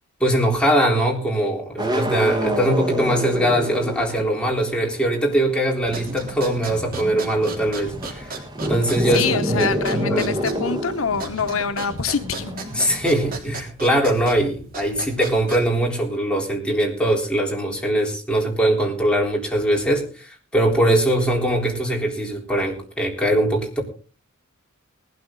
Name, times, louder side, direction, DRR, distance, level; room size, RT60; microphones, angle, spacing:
voice 1, 0.2-8.3 8.7-10.3 12.7-23.8, right 1 dB, 5° left, -1 dB, 3.7 m, -21 dB
sound 1, 1.8-4.6 4.9-13.4, equal, 20° right, 1.5 m, -28 dB
sound 2, 5.8-15.9, right 2 dB, 45° right, 3.5 m, -35 dB
voice 2, 9.1-12.5, left 5 dB, 70° left, 10 dB, 0.9 m, -25 dB
19.0 x 12.0 x 3.8 m, 0.38 s
head